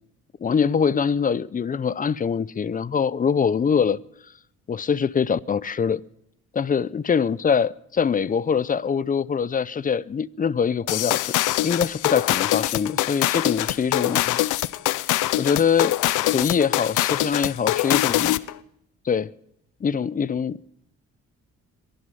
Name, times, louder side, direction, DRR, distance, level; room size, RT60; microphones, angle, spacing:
voice 1, 0.4-4.0 4.7-6.0 6.5-11.3 11.6-14.4 15.4-18.4 19.1-19.3 19.8-20.7, left 6 dB, 30° left, 0.5 m, -23 dB
sound 1, 10.9-18.5, left 15 dB, 85° left, 0.6 m, -23 dB
23.5 x 11.5 x 5.4 m
cardioid pair, 90°, 30 cm